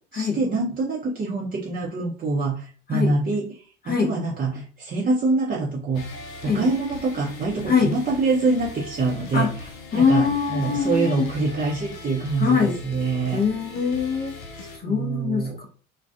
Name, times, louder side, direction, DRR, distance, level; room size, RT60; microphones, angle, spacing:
voice 1, 0.1-6.1 6.4-9.5 9.9-13.4 14.6-15.6, right 3 dB, 20° right, -3 dB, 0.5 m, -25 dB
sound 1, 5.9-14.8, left 3 dB, 80° left, 0.6 m, -40 dB
voice 2, 9.9-11.3 12.4-12.8 13.3-14.4 14.8-15.7, left 6 dB, 25° left, 1 dB, 0.5 m, -23 dB
2.3 x 2.2 x 2.4 m, 0.43 s
figure-of-eight pair, 60°, 40 cm